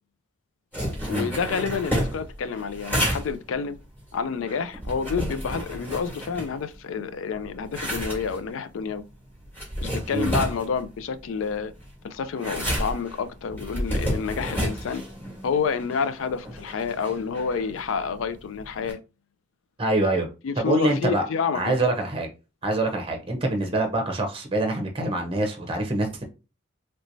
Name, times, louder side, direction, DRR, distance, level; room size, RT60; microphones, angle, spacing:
sound 1, 0.7-6.9 7.3-18.9, equal, 10° left, 1.5 m, -31 dB
voice 1, 1.1-3.8 4.1-9.0 9.8-11.7 12.0-15.0 15.4-19.0 20.4-21.9, left 6 dB, 80° left, 0.4 m, -29 dB
voice 2, 19.8-20.3 20.6-21.2 21.5-22.3 22.6-26.2, right 2 dB, 25° right, 0.7 m, -25 dB
3.2 x 3.0 x 2.6 m
head